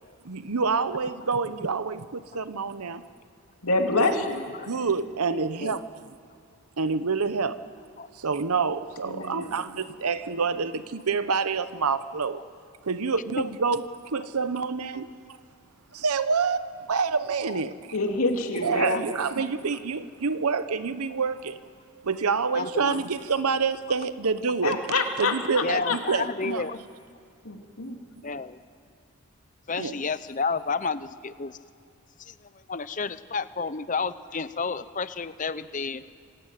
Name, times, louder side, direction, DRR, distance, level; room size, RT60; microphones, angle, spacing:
voice 1, 0.2-3.0 4.0-4.1 4.7-5.9 6.8-7.6 8.1-12.4 12.8-15.1 15.9-17.9 18.6-21.6 22.0-24.8 25.2-26.7 29.8-29.9, right 5 dB, 85° right, 0.8 m, -27 dB
voice 2, 3.6-4.4 9.0-9.6 17.9-19.0 24.6-26.0 27.4-28.0, left 3 dB, 75° left, 2.7 m, -26 dB
voice 3, 5.3-5.8 8.0-8.1 17.5-17.6 22.5-23.1 25.6-26.8 28.2-28.6 29.7-31.6 32.2-32.3 32.7-36.0, left 4 dB, 35° left, 0.7 m, -31 dB
26.5 x 16.0 x 9.2 m
head